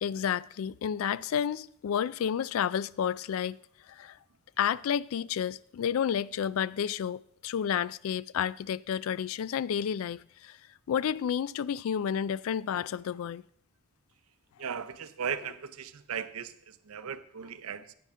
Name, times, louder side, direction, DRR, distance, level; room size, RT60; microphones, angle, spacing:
voice 1, 0.0-3.6 3.9-4.2 4.6-10.6 10.9-13.4, left 8 dB, 80° left, 0.3 m, -31 dB
voice 2, 14.6-17.9, right 7 dB, 90° right, 0.6 m, -37 dB
9.9 x 9.4 x 3.6 m
head